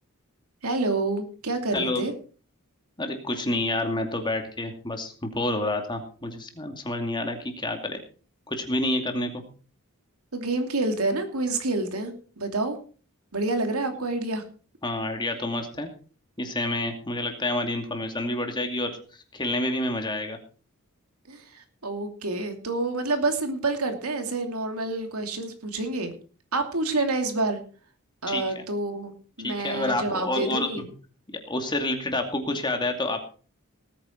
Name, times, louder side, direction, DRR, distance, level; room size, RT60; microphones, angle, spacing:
voice 1, 0.6-2.1 10.3-12.8 13.3-14.4 21.3-26.1 26.5-27.6 28.2-30.8, right 2 dB, 85° right, 6 dB, 2.8 m, -28 dB
voice 2, 3.0-8.0 8.5-9.4 14.8-15.9 16.4-20.4 28.3-28.6 29.4-30.8 31.5-33.2, left 2 dB, 20° left, 5 dB, 2.5 m, -28 dB
18.5 x 9.4 x 4.5 m, 0.40 s
head